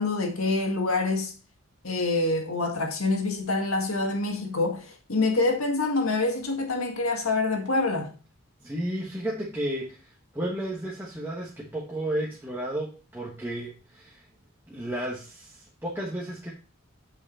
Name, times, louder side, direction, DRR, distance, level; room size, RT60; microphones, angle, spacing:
voice 1, 0.0-1.3 1.8-8.1, left 3 dB, 80° left, 1.8 m, -26 dB
voice 2, 8.6-14.2 14.7-16.5, right 1 dB, 10° right, 1.3 m, -33 dB
8.2 x 5.6 x 4.1 m
head